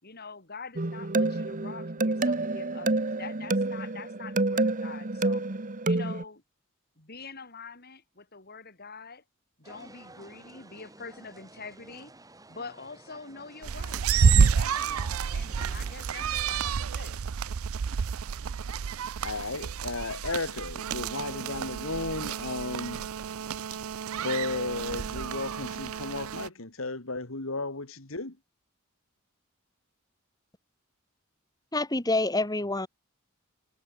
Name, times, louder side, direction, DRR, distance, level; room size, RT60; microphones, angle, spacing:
voice 1, 0.0-5.4 5.8-6.4 7.0-9.2 9.6-12.1 12.5-17.2, left 4 dB, 50° left, 5.4 m, -45 dB
sound 1, 0.8-6.2, right 2 dB, 40° right, 1.3 m, -28 dB
sound 2, 9.6-16.9, right 2 dB, 15° right, 6.4 m, -52 dB
sound 3, 13.6-26.5, right 6 dB, 80° right, 0.5 m, -29 dB
voice 2, 19.2-23.0 23.7-23.8 24.1-28.4, left 3 dB, 70° left, 2.5 m, -34 dB
voice 3, 31.7-32.9, left 2 dB, 20° left, 2.5 m, -27 dB
head